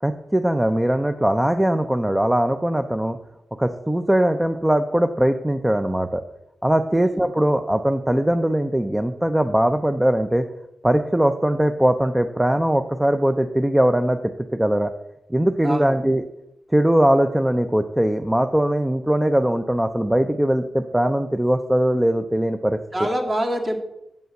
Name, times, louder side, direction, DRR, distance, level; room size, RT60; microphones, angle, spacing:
voice 1, 0.0-3.2 3.6-6.2 6.6-10.4 10.8-14.9 15.3-16.2 16.7-22.8, right 1 dB, 10° right, 7 dB, 0.5 m, -20 dB
voice 2, 6.9-7.2 15.6-16.0 22.9-23.8, right 1 dB, 30° right, 3 dB, 1.7 m, -25 dB
7.7 x 5.5 x 7.6 m, 0.86 s
wide cardioid pair, 100°, 0 cm